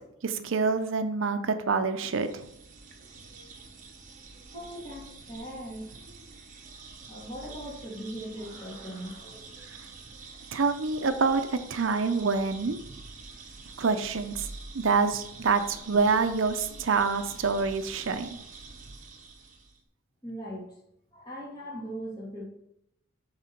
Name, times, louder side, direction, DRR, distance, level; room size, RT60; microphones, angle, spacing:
voice 1, 0.2-2.4 10.5-11.4 11.7-12.8 13.8-14.5 14.7-18.4, right 4 dB, 65° right, 9 dB, 0.5 m, -26 dB
sound 1, 2.0-19.8, right 4 dB, 40° right, 1.1 m, -47 dB
voice 2, 4.5-6.0 7.1-9.5 20.2-20.8 21.1-22.4, equal, 20° left, -4 dB, 2.3 m, -39 dB
8.8 x 3.7 x 5.8 m, 0.77 s
head